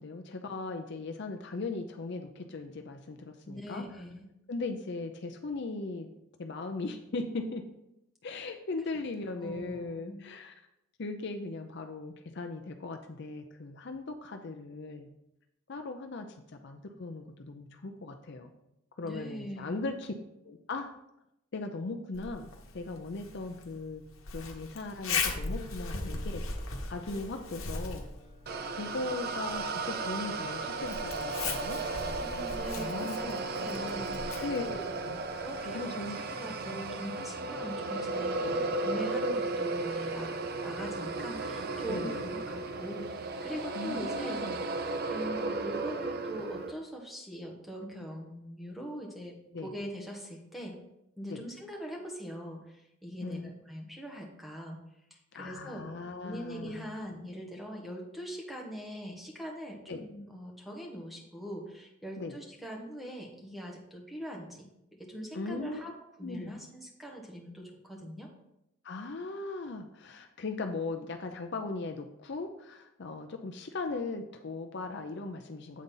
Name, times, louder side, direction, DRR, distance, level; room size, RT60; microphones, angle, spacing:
voice 1, 0.0-3.8 4.5-6.1 6.4-7.6 8.2-10.5 11.0-15.1 15.7-18.5 19.0-20.1 20.4-20.9 21.5-24.0 24.3-28.1 28.8-31.8 32.8-33.3 34.4-35.2 35.7-36.2 36.6-36.8 37.5-37.6 38.4-38.6 41.9-42.2 43.7-44.6 49.5-49.7 51.3-51.4 53.2-53.5 55.3-57.0 59.9-60.0 62.2-62.3 65.3-65.8 66.2-66.5 68.8-75.8, left 3 dB, 50° left, 5 dB, 0.5 m, -38 dB
voice 2, 3.4-4.3 9.4-10.2 19.0-19.9 32.2-34.5 35.3-40.3 40.6-43.1 43.4-50.8 51.2-54.8 55.1-55.9 56.2-65.9 66.2-68.3, equal, ahead, -1 dB, 1.2 m, -42 dB
Zipper (clothing), 22.1-35.7, left 4 dB, 70° left, 1.1 m, -39 dB
sound 1, 25.3-37.5, right 1 dB, 35° left, 1.8 m, -54 dB
sound 2, 28.5-46.7, right 3 dB, 45° right, 0.5 m, -35 dB
8.4 x 3.9 x 5.5 m, 0.84 s
head